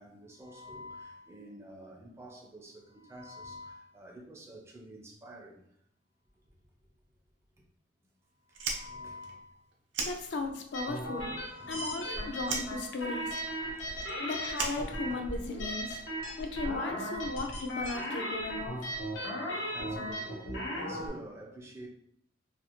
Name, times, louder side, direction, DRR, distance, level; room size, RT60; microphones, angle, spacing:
voice 1, 0.0-5.6 8.5-9.6 11.4-11.9 14.0-14.1 17.1-17.5 19.4-21.9, equal, 15° right, 0.4 m, -47 dB
Fire, 8.5-10.8 11.1-12.1 12.4-15.6, right 4 dB, 70° right, 0.5 m, -38 dB
voice 2, 10.0-11.3 11.7-13.6 14.2-16.0 16.4-18.8, left 3 dB, 60° left, 0.4 m, -36 dB
sound 1, 10.7-21.1, equal, 85° left, 0.8 m, -37 dB
2.5 x 2.4 x 2.8 m
head